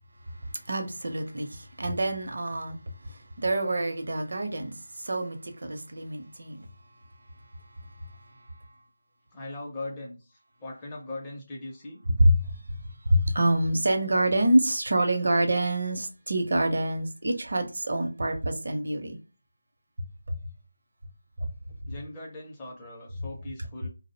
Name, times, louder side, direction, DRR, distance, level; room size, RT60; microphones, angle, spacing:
voice 1, 0.7-2.8 3.4-4.7 5.0-6.6 12.2-12.5 13.1-19.2 21.4-21.5, right 1 dB, 60° right, 0.6 m, -26 dB
voice 2, 9.3-12.0 21.9-23.9, left 2 dB, 15° left, 0.5 m, -40 dB
2.5 x 2.0 x 2.7 m
figure-of-eight pair, 165°, 0 cm